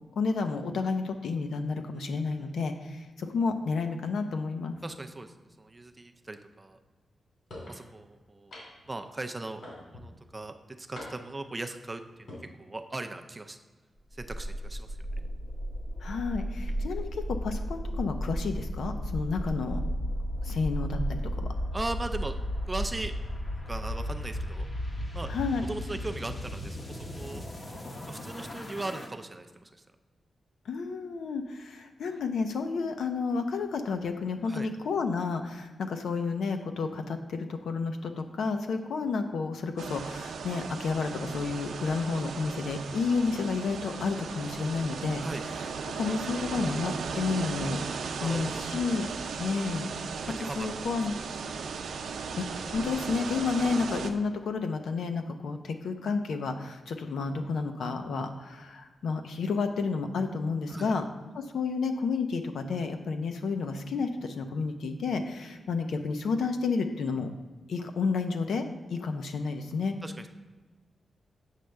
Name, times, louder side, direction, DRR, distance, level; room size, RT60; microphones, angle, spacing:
voice 1, 0.2-4.7 16.0-19.8 20.4-21.5 25.3-25.7 30.6-45.2 45.9-49.1 49.4-49.9 50.6-51.1 52.4-52.5 52.7-61.0 61.3-67.3 67.7-68.6 68.9-69.9, left 4 dB, 85° left, 6 dB, 0.7 m, -31 dB
voice 2, 4.8-6.8 7.7-8.5 8.9-9.6 9.9-13.6 14.1-15.0 16.6-16.8 21.7-22.3 22.7-23.1 23.5-24.7 25.1-25.3 25.7-27.4 28.1-29.7 34.5-34.7 45.2-45.4 48.2-48.7 50.4-50.7 51.2-51.3 60.7-60.9 70.0-70.3, right 2 dB, 20° right, 7 dB, 0.4 m, -38 dB
sound 1, 7.5-7.8 8.5-8.9 9.6-10.1 10.9-11.4 12.1-12.4, left 1 dB, 55° left, 2.6 m, -43 dB
sound 2, 14.1-29.1, equal, 30° left, 0.9 m, -34 dB
sound 3, 39.8-54.1, right 5 dB, 90° right, 0.6 m, -36 dB
8.3 x 3.4 x 6.4 m, 1.3 s
wide cardioid pair, 160°, 0 cm